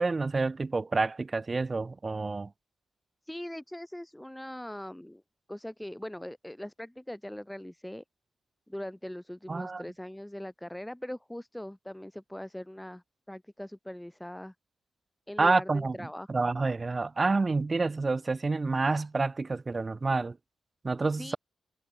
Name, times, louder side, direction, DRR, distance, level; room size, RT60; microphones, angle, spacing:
voice 1, 0.0-2.5 9.5-9.8 15.4-20.4 20.8-21.4, right 3 dB, 30° right, 0.5 m, -28 dB
voice 2, 3.3-5.2 5.5-8.0 8.7-14.5 15.3-16.5 21.2-21.4, left 1 dB, 5° left, 0.9 m, -41 dB
cardioid pair, 65°, 0 cm